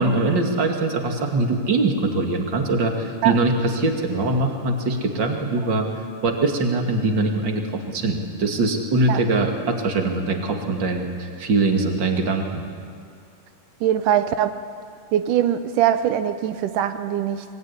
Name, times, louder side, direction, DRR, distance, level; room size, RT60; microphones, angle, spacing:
voice 1, 0.0-5.9 6.2-12.6, right 2 dB, 35° right, 3 dB, 2.8 m, -22 dB
voice 2, 13.8-14.5 15.1-17.4, right 10 dB, 85° right, 9 dB, 2.5 m, -21 dB
24.0 x 22.5 x 10.0 m, 2.3 s
omnidirectional pair, 3.7 m